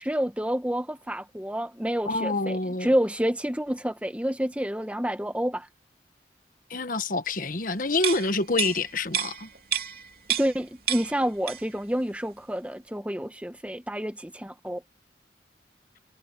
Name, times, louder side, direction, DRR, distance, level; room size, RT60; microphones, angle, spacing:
voice 1, 0.0-5.7 10.4-14.8, equal, 5° right, 1.1 m, -29 dB
voice 2, 2.1-2.9 6.7-9.5, left 3 dB, 50° left, 1.3 m, -27 dB
sound 1, 8.0-10.6 10.9-11.8 12.2-12.3, right 10 dB, 55° right, 2.8 m, -30 dB
head